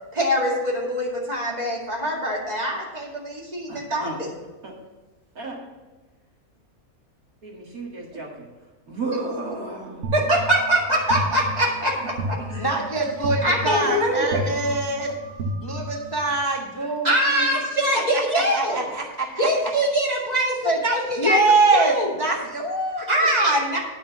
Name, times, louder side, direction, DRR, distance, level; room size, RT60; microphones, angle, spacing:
voice 1, 0.1-4.3 10.1-12.7 13.4-14.5 17.0-18.9 19.4-21.4 21.7-22.1 23.1-23.8, right 1 dB, 25° right, -3 dB, 2.2 m, -23 dB
voice 2, 3.7-4.2 4.6-4.7 5.3-5.6 7.4-8.3 8.9-10.0 12.5-12.6 13.8-14.6, right 3 dB, 75° right, -2 dB, 2.4 m, -33 dB
sound 1, 10.0-16.4, right 1 dB, 90° right, 1.5 m, -32 dB
voice 3, 12.6-15.1 15.6-17.5 17.9-18.2 18.5-19.5 20.6-20.8 21.2-23.1, right 2 dB, 20° left, 0 dB, 0.8 m, -24 dB
9.2 x 5.0 x 7.1 m, 1.2 s
omnidirectional pair, 1.6 m